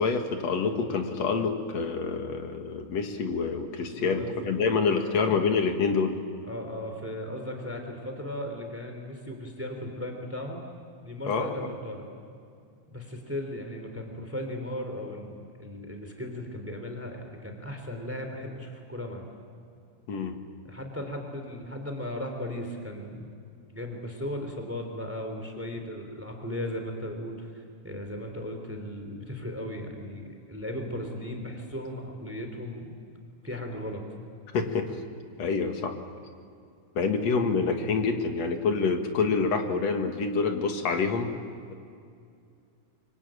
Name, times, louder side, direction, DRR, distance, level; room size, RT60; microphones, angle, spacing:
voice 1, 0.0-6.2 11.3-11.7 20.1-20.4 34.5-35.0 35.4-35.9 37.0-41.3 41.7-41.8, left 4 dB, 60° left, 5 dB, 2.8 m, -27 dB
voice 2, 3.8-4.6 4.9-5.3 6.5-10.6 11.0-12.1 12.9-19.3 20.6-23.3 23.7-32.9 33.4-34.0, left 1 dB, 5° right, 4 dB, 3.0 m, -37 dB
24.5 x 24.0 x 9.1 m, 2.3 s
omnidirectional pair, 3.6 m